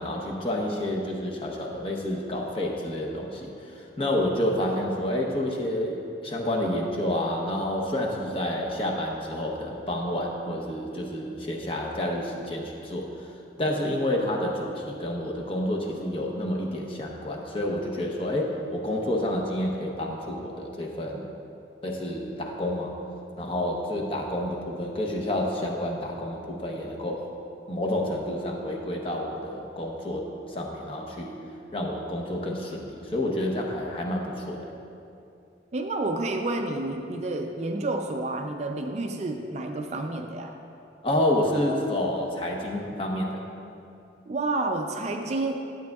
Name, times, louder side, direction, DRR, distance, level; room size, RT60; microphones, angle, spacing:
voice 1, 0.0-13.3 13.6-21.3 21.8-23.0 23.4-27.3 27.7-31.4 31.7-34.7 41.0-43.4, left 1 dB, 30° left, -1 dB, 0.8 m, -29 dB
voice 2, 35.7-40.6 44.3-45.7, right 2 dB, 35° right, 4 dB, 0.4 m, -29 dB
12.0 x 7.7 x 2.3 m, 2.7 s
head